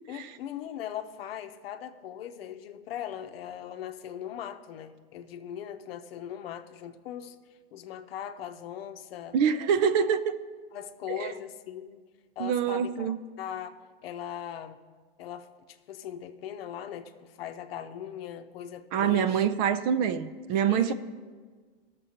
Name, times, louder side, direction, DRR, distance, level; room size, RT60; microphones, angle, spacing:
voice 1, 0.1-7.4 7.7-9.3 9.8-10.1 10.7-12.0 12.4-14.8 15.2-19.5 20.7-20.9, left 10 dB, 75° left, 0.8 m, -39 dB
voice 2, 9.3-10.2 11.1-11.3 12.4-13.2 18.9-20.9, right 8 dB, 45° right, 0.5 m, -25 dB
17.5 x 6.8 x 2.8 m
hypercardioid pair, 125°, 30 cm